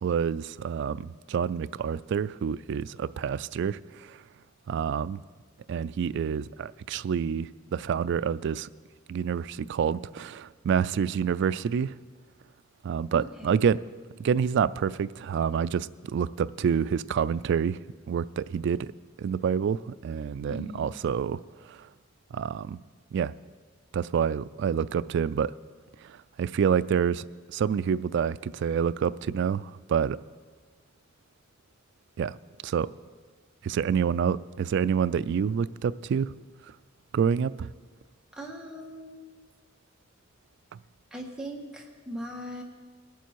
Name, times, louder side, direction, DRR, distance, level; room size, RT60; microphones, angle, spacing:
voice 1, 0.0-4.2 4.7-5.2 5.7-8.7 9.1-12.0 12.8-13.8 14.2-17.8 18.1-18.9 19.2-21.4 21.7-21.9 22.3-22.8 23.1-23.3 23.9-25.5 26.0-30.2 32.2-32.4 32.6-32.9 33.6-36.3 37.1-37.7 40.7-40.8, right 7 dB, 60° right, 16 dB, 0.3 m, -28 dB
voice 2, 13.1-13.6 20.5-20.9 38.3-39.4 41.1-42.6, equal, 5° right, -2 dB, 1.5 m, -40 dB
20.0 x 7.0 x 4.6 m, 1.5 s
head